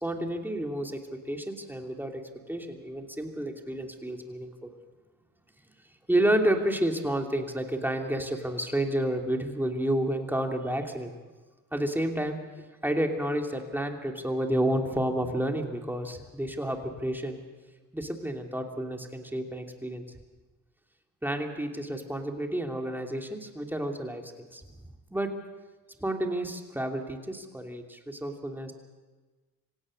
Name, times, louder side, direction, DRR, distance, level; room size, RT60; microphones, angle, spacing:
voice 1, 0.0-1.0 1.3-2.2 2.5-4.7 6.1-11.1 11.7-12.4 12.8-17.4 17.9-20.0 21.2-24.6 25.1-25.3 26.0-28.7, right 1 dB, 5° right, 3 dB, 3.0 m, -30 dB
26.0 x 17.0 x 6.6 m, 1.3 s
cardioid pair, 80°, 36 cm